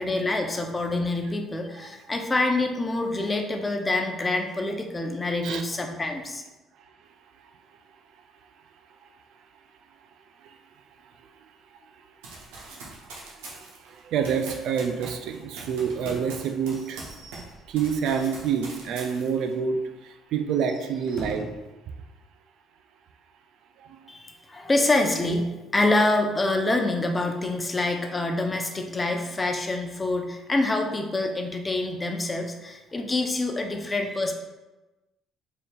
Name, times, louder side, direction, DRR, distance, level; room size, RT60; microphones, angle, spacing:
voice 1, 0.0-6.4 24.1-34.3, left 2 dB, 25° left, 3 dB, 0.6 m, -26 dB
voice 2, 1.8-2.1 5.4-5.7 7.0-7.1 7.4-7.5 9.0-9.1 10.4-10.6 11.0-11.4 11.7-17.1 17.7-21.6 22.0-22.1 23.8-24.1, right 7 dB, 70° right, 7 dB, 0.3 m, -29 dB
Run, 12.2-17.5 17.8-19.5, right 3 dB, 90° right, 0.8 m, -42 dB
Slam / Squeak / Wood, 15.9-19.1 19.4-19.5 19.8-19.9 20.4-21.7, right 2 dB, 55° right, 0.8 m, -45 dB
4.2 x 3.6 x 2.3 m, 1.1 s
supercardioid pair, 70°, 0 cm